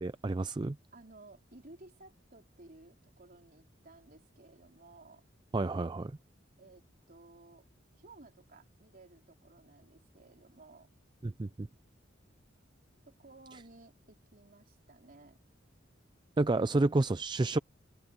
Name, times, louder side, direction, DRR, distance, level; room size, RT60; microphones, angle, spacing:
voice 1, 0.0-0.8 5.5-6.1 11.2-11.7 16.4-17.6, right 2 dB, 25° right, 0.4 m, -30 dB
voice 2, 0.9-5.2 6.6-7.7 7.9-10.9 13.1-15.4, right 2 dB, 50° right, 3.7 m, -56 dB
head